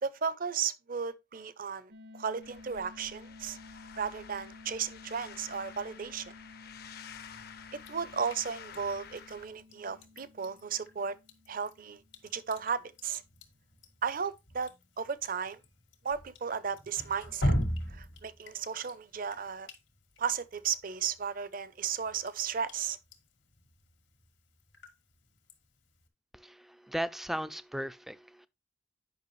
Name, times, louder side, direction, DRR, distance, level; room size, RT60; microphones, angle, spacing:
voice 1, 0.0-3.6 4.0-6.3 7.7-11.2 11.5-12.0 12.3-13.2 14.0-15.6 16.0-17.5 17.9-19.7 20.2-23.0, right 6 dB, 50° right, 0.6 m, -35 dB
sound 1, 1.9-12.6, left 3 dB, 80° right, 1.3 m, -53 dB
sound 2, 2.4-9.5, left 7 dB, 55° left, 0.6 m, -50 dB
Drip, 7.8-26.1, equal, 85° left, 1.9 m, -41 dB
voice 2, 26.3-28.5, equal, ahead, 0.3 m, -37 dB
9.5 x 5.6 x 3.1 m
head